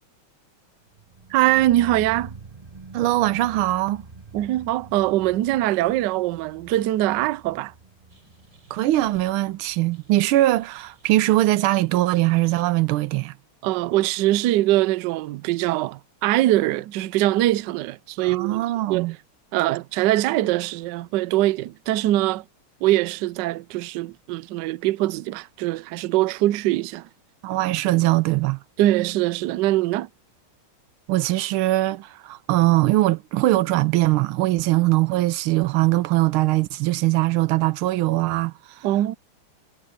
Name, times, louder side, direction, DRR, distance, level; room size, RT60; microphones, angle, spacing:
sound 1, 0.9-11.9 12.1-12.2, right 3 dB, 20° right, 1.4 m, -46 dB
voice 1, 1.3-2.3 4.3-7.7 13.6-18.6 18.9-19.1 19.5-22.4 22.8-27.1 28.8-30.1 38.8-39.1, right 15 dB, 70° right, 1.1 m, -22 dB
voice 2, 2.9-4.0 8.7-13.3 18.2-19.1 27.4-28.6 31.1-38.9, right 17 dB, 90° right, 1.5 m, -21 dB
sound 2, 8.1-9.3 9.9-11.6 12.2-12.7, right 2 dB, 55° right, 6.1 m, -53 dB
omnidirectional pair, 2.3 m